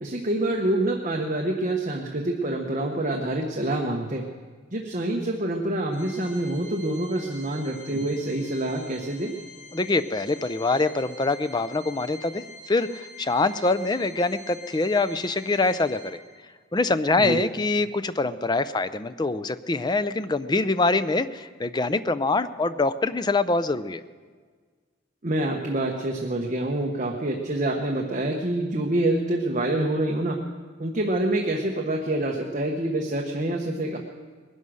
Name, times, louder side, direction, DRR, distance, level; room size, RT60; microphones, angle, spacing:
voice 1, 0.0-4.3 4.7-9.3 17.2-17.4 25.2-30.4 30.8-34.0, right 1 dB, 40° right, 1 dB, 1.1 m, -26 dB
Organ, 5.9-16.5, left 1 dB, 60° left, 4.7 m, -46 dB
voice 2, 9.7-16.2 16.7-24.0, left 3 dB, 20° left, 13 dB, 0.5 m, -24 dB
20.5 x 11.0 x 6.4 m, 1.6 s
head